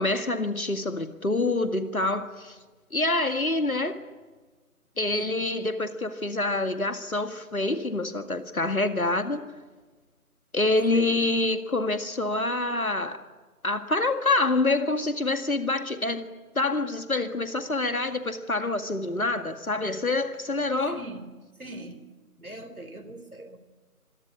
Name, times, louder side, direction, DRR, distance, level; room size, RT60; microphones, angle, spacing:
voice 1, 0.0-2.6 2.9-4.0 5.0-9.5 10.5-13.2 13.6-16.3 16.5-21.0, left 2 dB, 70° left, 8 dB, 2.1 m, -26 dB
voice 2, 5.1-5.5 10.9-11.2 20.9-21.3 21.6-22.0 22.4-23.6, right 1 dB, 70° right, 11 dB, 3.9 m, -41 dB
26.0 x 21.5 x 9.9 m, 1.3 s
figure-of-eight pair, 160°, 45 cm